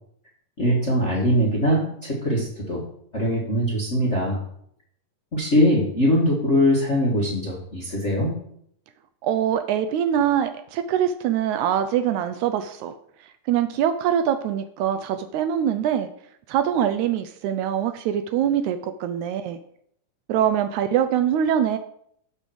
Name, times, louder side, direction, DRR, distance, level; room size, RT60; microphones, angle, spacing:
voice 1, 0.6-2.8 3.1-4.4 5.3-8.3, equal, 40° left, -4 dB, 1.1 m, -22 dB
voice 2, 9.2-12.9 13.2-16.1 16.5-19.6 20.3-21.8, right 9 dB, 80° right, 9 dB, 1.8 m, -23 dB
8.8 x 4.3 x 6.2 m, 0.69 s
omnidirectional pair, 3.6 m